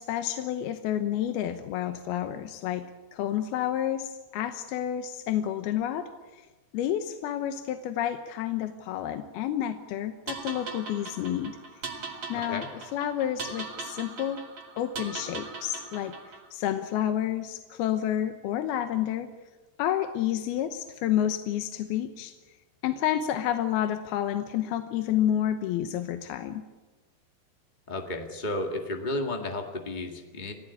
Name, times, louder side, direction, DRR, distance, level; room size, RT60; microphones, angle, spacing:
voice 1, 0.0-6.5 6.7-11.6 12.3-12.7 12.9-14.4 14.8-16.1 16.5-19.3 19.8-22.4 22.8-26.6, left 11 dB, 75° left, 7 dB, 2.8 m, -30 dB
sound 1, 10.3-16.5, right 4 dB, 45° right, 2.8 m, -40 dB
voice 2, 12.3-12.7 27.9-30.5, left 2 dB, 55° left, 3 dB, 0.5 m, -33 dB
27.5 x 17.5 x 8.5 m, 1.2 s
omnidirectional pair, 4.7 m